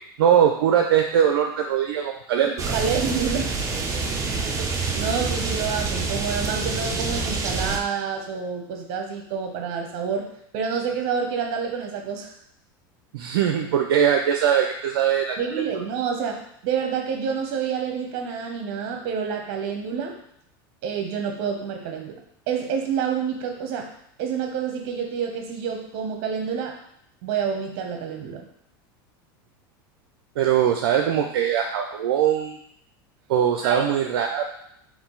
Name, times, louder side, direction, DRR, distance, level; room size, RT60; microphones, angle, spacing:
voice 1, 0.2-2.7 13.1-15.4 15.7-15.8 30.4-32.6 33.3-34.5, right 9 dB, 80° right, 3 dB, 0.4 m, -21 dB
sound 1, 2.6-7.8, right 4 dB, 25° right, 0.6 m, -27 dB
voice 2, 2.7-3.5 4.6-10.3 10.5-12.3 15.4-20.1 20.8-22.2 22.5-23.9 24.2-26.8 27.2-28.5 33.6-33.8, right 6 dB, 60° right, 3 dB, 0.9 m, -28 dB
3.6 x 2.6 x 3.9 m, 0.72 s
supercardioid pair, 115°, 12 cm